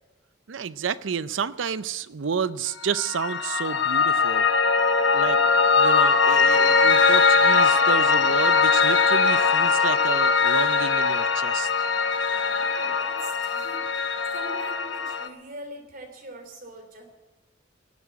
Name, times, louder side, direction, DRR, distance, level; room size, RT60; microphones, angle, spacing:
voice 1, 0.5-4.5 5.1-5.4 5.7-11.7, right 6 dB, 85° right, 16 dB, 0.6 m, -30 dB
Piano, 2.9-15.3, left 4 dB, 70° left, 1.0 m, -21 dB
voice 2, 12.3-17.1, right 1 dB, 50° right, 4 dB, 3.3 m, -43 dB
17.5 x 7.5 x 9.5 m, 1.1 s
head